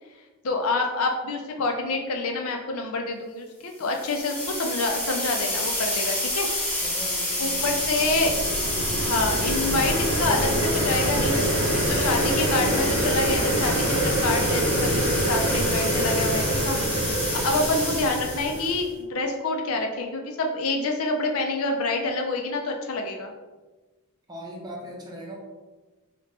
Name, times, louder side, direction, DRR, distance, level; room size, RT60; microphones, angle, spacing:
voice 1, 0.4-6.5 7.4-8.4 9.0-11.4 11.9-16.8 17.4-23.3, left 3 dB, 70° left, 3 dB, 0.5 m, -27 dB
sound 1, 3.8-18.8, left 1 dB, 10° left, 0.8 m, -29 dB
voice 2, 6.8-8.5 24.3-25.3, equal, 20° right, -2 dB, 0.6 m, -39 dB
sound 2, 7.4-18.8, right 1 dB, 90° right, 0.7 m, -26 dB
2.9 x 2.8 x 3.3 m, 1.3 s
head